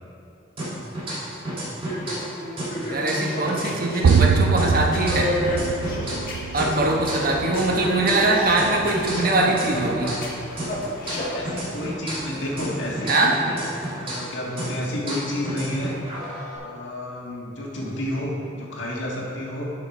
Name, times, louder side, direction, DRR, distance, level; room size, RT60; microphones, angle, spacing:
sound 1, 0.6-2.3 2.6-6.3 6.6-10.3 10.6-14.3 14.6-16.6, right 1 dB, 30° right, 2.3 m, -32 dB
sound 2, 1.7-11.4, left 1 dB, 50° left, 1.9 m, -31 dB
voice 1, 2.9-5.3 6.5-10.2 13.0-13.3, right 2 dB, 50° right, -1 dB, 1.2 m, -22 dB
sound 3, 4.0-13.1, right 5 dB, 65° right, 0.3 m, -26 dB
voice 2, 11.1-13.6 13.9-15.9 16.5-19.7, left 1 dB, 70° left, -3 dB, 1.8 m, -30 dB
11.5 x 6.4 x 4.3 m, 2.7 s
head